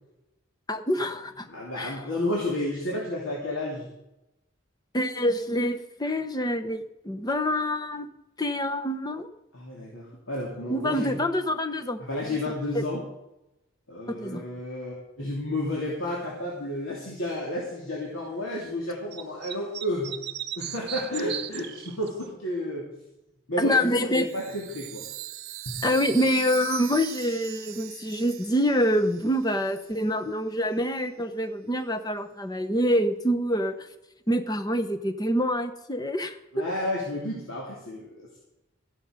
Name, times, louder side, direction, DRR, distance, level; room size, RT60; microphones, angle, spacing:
voice 1, 0.7-1.5 1.8-1.9 4.9-8.1 8.4-9.3 10.7-12.0 12.7-12.8 14.1-14.4 23.6-24.3 25.8-33.7 34.3-36.6, equal, 20° left, 9 dB, 0.8 m, -26 dB
voice 2, 1.4-3.9 9.5-11.2 12.0-13.0 13.9-20.1 20.6-22.9 23.5-23.9 24.1-25.0 25.6-25.7 36.5-38.4, left 1 dB, 85° left, -3 dB, 2.9 m, -31 dB
sound 1, 19.1-22.3, right 11 dB, 55° right, 0.6 m, -36 dB
Chime, 24.2-29.8, right 13 dB, 85° right, 0.8 m, -40 dB
14.0 x 11.0 x 5.1 m, 0.92 s
head